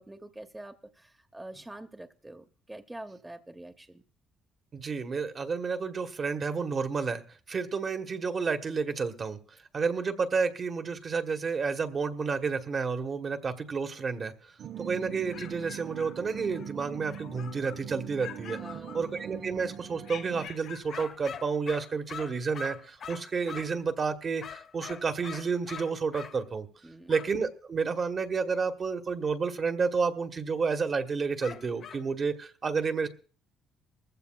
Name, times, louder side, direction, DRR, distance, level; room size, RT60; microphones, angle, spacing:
voice 1, 0.0-4.0 18.6-19.0 26.8-27.1, right 1 dB, 10° right, 6 dB, 0.8 m, -46 dB
voice 2, 4.7-7.2 7.5-9.4 9.7-14.3 14.8-18.6 18.9-26.7 27.1-33.1, right 5 dB, 40° right, 7 dB, 1.2 m, -30 dB
sound 1, 14.6-20.5, right 9 dB, 55° right, 0.6 m, -42 dB
sound 2, 15.1-16.7 17.1-17.9 18.2-19.4 20.0-21.1, left 9 dB, 75° left, 1.9 m, -47 dB
sound 3, 20.9-23.8 24.4-26.4 27.1-27.3 31.4-32.1, left 7 dB, 50° left, 0.7 m, -43 dB
21.0 x 15.0 x 2.3 m, 0.39 s
cardioid pair, 105°, 0 cm